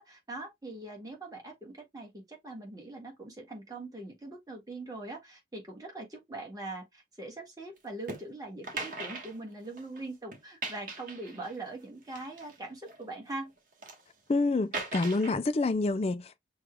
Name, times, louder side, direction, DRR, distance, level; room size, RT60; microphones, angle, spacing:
voice 1, 0.0-13.5, right 2 dB, 20° right, 1.7 m, -42 dB
sound 1, 8.1-8.2 8.6-10.0 10.3-11.6 12.1-13.1 13.6-14.0 14.7-15.3, right 3 dB, 50° right, 1.3 m, -39 dB
voice 2, 14.3-16.4, left 3 dB, 35° left, 0.4 m, -28 dB
6.0 x 2.4 x 3.3 m
head